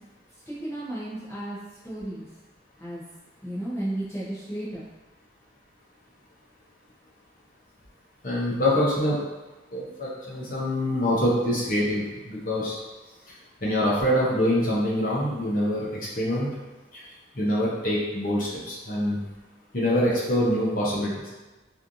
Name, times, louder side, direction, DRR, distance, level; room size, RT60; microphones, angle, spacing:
voice 1, 0.5-1.6 1.8-2.3 2.8-3.0 3.4-4.8, right 1 dB, 15° left, -11 dB, 0.8 m, -33 dB
voice 2, 8.2-9.2 9.7-12.7 13.3-13.4 13.6-16.5 16.9-17.0 17.3-19.2 19.7-21.3, left 1 dB, 50° left, -5 dB, 0.8 m, -25 dB
3.1 x 2.6 x 2.6 m, 1.2 s
head